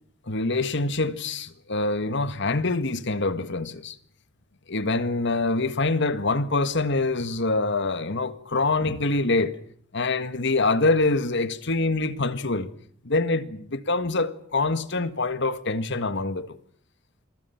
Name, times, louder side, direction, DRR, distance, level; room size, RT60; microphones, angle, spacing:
voice 1, 0.3-4.0 4.7-9.6 9.9-12.7 13.0-16.6, left 3 dB, 60° left, 1.7 m, -25 dB
28.0 x 24.0 x 5.9 m
head